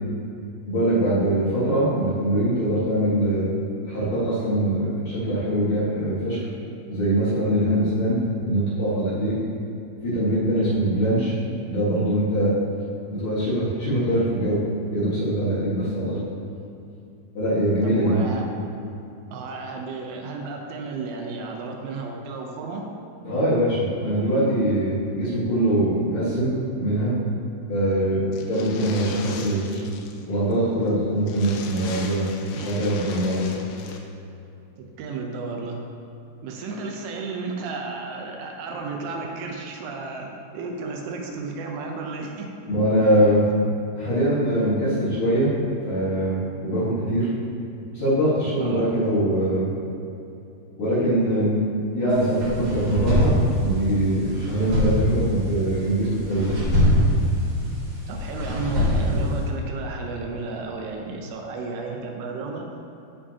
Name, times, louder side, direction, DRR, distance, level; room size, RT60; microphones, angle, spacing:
voice 1, 0.7-3.5 3.9-6.4 6.9-9.4 10.0-11.3 11.7-12.5 13.1-14.6 14.9-16.2 17.3-18.2 23.2-26.5 26.8-27.1 27.7-29.8 30.3-33.5 42.7-43.4 43.9-45.5 45.8-47.3 47.9-49.7 50.8-51.6 51.9-56.6, right 1 dB, 55° left, -11 dB, 2.6 m, -23 dB
voice 2, 17.8-18.5 19.3-22.9 34.8-35.8 36.4-42.5 48.6-48.8 58.1-62.7, right 3 dB, 80° right, 1 dB, 3.1 m, -33 dB
sound 1, 28.3-30.3 30.5-30.6 30.9-31.0 31.2-34.0, left 5 dB, 90° left, 3.2 m, -39 dB
sound 2, 52.1-59.5, equal, 50° right, 2.7 m, -24 dB
15.0 x 5.0 x 2.8 m, 2.8 s
omnidirectional pair, 5.7 m